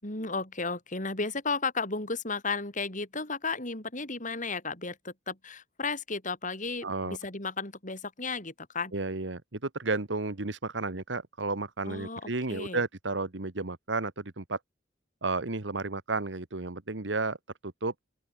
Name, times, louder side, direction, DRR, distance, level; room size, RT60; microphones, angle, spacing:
voice 1, 0.0-8.9 11.9-12.8, left 4 dB, 45° left, 7.2 m, -34 dB
voice 2, 6.8-7.2 8.9-14.6 15.2-17.4 17.6-17.9, right 3 dB, 75° right, 1.5 m, -32 dB
open air
head